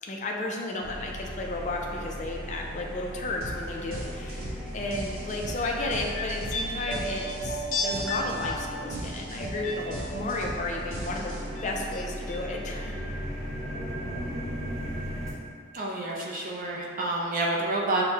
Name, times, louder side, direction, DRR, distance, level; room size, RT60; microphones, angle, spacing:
voice 1, 0.0-4.5 4.7-13.0, left 2 dB, 35° left, 0 dB, 0.4 m, -33 dB
sound 1, 0.8-15.3, equal, ahead, 0.8 m, -37 dB
sound 2, 3.4-3.6 3.9-11.7, right 1 dB, 75° right, 1.1 m, -38 dB
sound 3, 5.6-10.8 11.1-12.0 12.3-12.4, left 1 dB, 65° left, 0.7 m, -34 dB
voice 2, 15.7-18.0, right 2 dB, 40° right, -2 dB, 0.5 m, -29 dB
6.4 x 2.1 x 2.8 m, 2.2 s
head